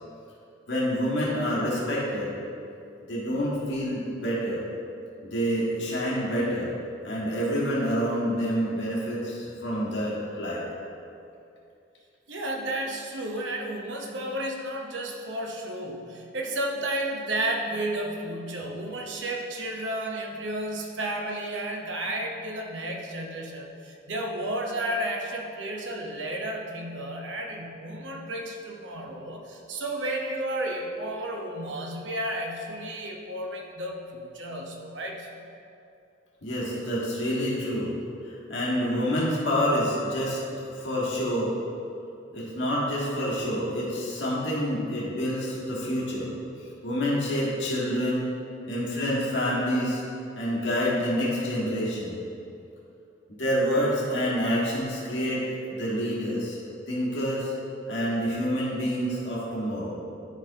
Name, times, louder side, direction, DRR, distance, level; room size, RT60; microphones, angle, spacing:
voice 1, 0.7-2.3 3.1-4.6 5.2-6.7 7.0-10.6 36.4-37.9 38.3-41.5 42.3-46.3 46.8-48.3 48.7-50.0 50.3-52.2 53.4-56.6 56.9-57.5 57.9-59.9, equal, 90° left, -6 dB, 1.7 m, -27 dB
voice 2, 12.3-35.3, right 1 dB, 85° right, 1 dB, 0.9 m, -32 dB
11.0 x 5.0 x 2.8 m, 2.6 s
head